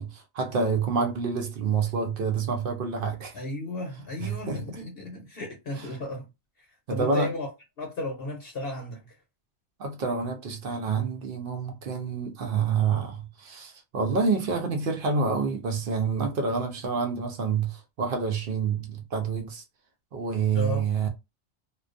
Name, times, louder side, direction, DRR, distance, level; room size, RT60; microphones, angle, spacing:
voice 1, 0.0-3.3 4.2-4.8 6.9-7.3 9.8-19.6 20.1-21.1, right 5 dB, 60° right, 0.6 m, -28 dB
voice 2, 3.3-6.3 6.9-7.5 7.8-9.1 20.5-20.9, left 1 dB, 60° left, 0.8 m, -34 dB
2.3 x 2.2 x 2.5 m
omnidirectional pair, 1.3 m